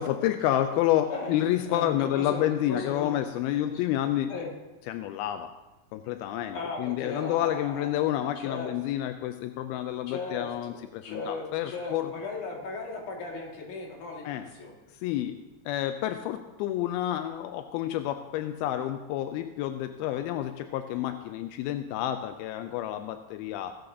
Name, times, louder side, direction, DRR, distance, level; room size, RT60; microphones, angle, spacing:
voice 1, 0.0-4.3 4.9-5.5 5.9-12.1 14.2-14.5 15.0-15.4 15.7-23.8, left 12 dB, 85° left, 8 dB, 2.5 m, -29 dB
voice 2, 1.7-3.2 3.6-3.7 4.3-4.5 6.5-8.7 10.1-10.5 11.0-14.7, left 3 dB, 60° left, -1 dB, 3.4 m, -37 dB
17.0 x 13.0 x 2.8 m, 1.1 s
omnidirectional pair, 4.3 m